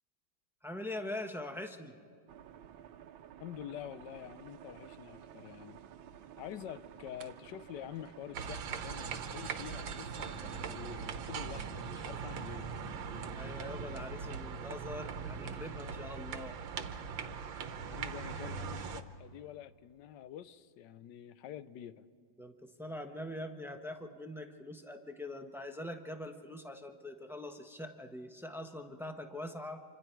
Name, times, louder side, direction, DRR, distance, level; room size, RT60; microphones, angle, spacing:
voice 1, 0.6-2.0 13.3-16.6 22.4-29.8, left 1 dB, ahead, 5 dB, 0.6 m, -43 dB
sound 1, 2.3-11.9, right 9 dB, 90° right, 1.6 m, -53 dB
voice 2, 3.4-5.8 6.4-12.7 17.8-22.0, left 11 dB, 70° left, 14 dB, 1.2 m, -47 dB
sound 2, 8.3-19.0, right 6 dB, 75° right, 1.7 m, -40 dB
27.0 x 25.5 x 4.6 m, 2.2 s
omnidirectional pair, 2.2 m